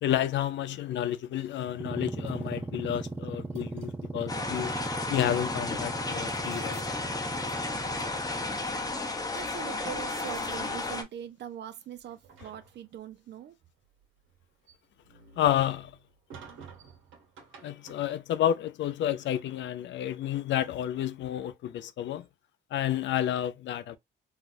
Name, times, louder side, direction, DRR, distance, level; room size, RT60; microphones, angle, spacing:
voice 1, 0.0-4.7 5.1-7.0 15.4-16.0 17.6-22.3 22.7-24.0, left 11 dB, 65° left, 0.4 m, -30 dB
sound 1, 1.7-9.0, right 3 dB, 10° right, 0.3 m, -38 dB
sound 2, 2.3-3.1 3.5-4.3 5.5-5.7 6.1-7.0 7.4-7.6 7.8-8.2 9.7-11.6 12.0-13.1 13.8-18.3, right 5 dB, 80° right, 1.2 m, -53 dB
sound 3, 4.3-11.0, left 3 dB, 20° left, 0.7 m, -33 dB
voice 2, 9.3-13.6, right 10 dB, 60° right, 0.5 m, -42 dB
3.4 x 2.4 x 2.5 m
cardioid pair, 90°, 20 cm